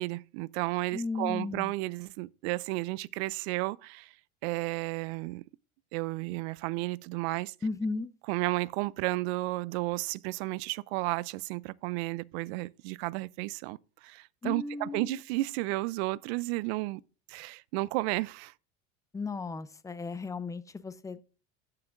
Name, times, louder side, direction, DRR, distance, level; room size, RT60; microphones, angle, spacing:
voice 1, 0.0-4.1 4.4-5.4 5.9-7.5 8.3-17.0 17.3-18.5, right 21 dB, 75° right, 0.5 m, -33 dB
voice 2, 0.9-1.7 7.6-8.1 14.4-15.2 19.1-21.2, left 3 dB, 10° left, 0.5 m, -35 dB
15.0 x 5.8 x 2.5 m
supercardioid pair, 115°, 32 cm